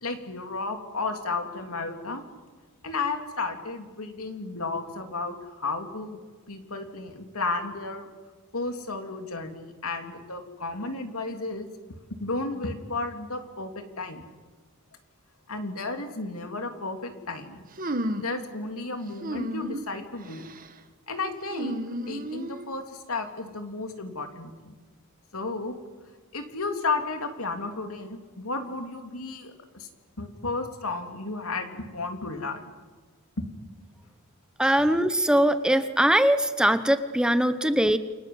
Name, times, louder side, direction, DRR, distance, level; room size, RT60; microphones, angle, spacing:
voice 1, 0.0-2.2 2.8-6.2 6.5-8.1 8.5-11.7 12.2-14.2 15.5-17.6 18.2-20.5 21.1-21.8 22.1-24.8 25.3-25.7 26.3-29.9 30.2-32.7, left 3 dB, 75° left, 5 dB, 3.2 m, -33 dB
sound 1, 17.8-18.4 19.2-19.9 20.3-20.7 21.5-22.7, right 1 dB, 40° right, 1.7 m, -32 dB
voice 2, 34.6-38.0, right 1 dB, 5° right, 10 dB, 0.9 m, -21 dB
29.0 x 25.0 x 8.0 m, 1.4 s
head